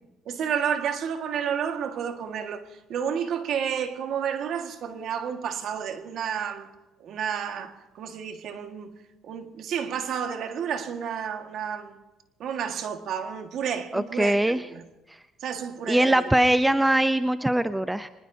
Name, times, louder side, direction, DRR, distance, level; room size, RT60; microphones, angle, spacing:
voice 1, 0.2-6.7 7.0-8.9 9.2-12.0 12.4-14.8 15.4-16.3, right 8 dB, 60° right, 1.7 m, -31 dB
voice 2, 13.9-14.6 15.9-18.1, right 1 dB, 5° right, 0.6 m, -22 dB
25.0 x 20.0 x 2.8 m
cardioid pair, 100°, 0 cm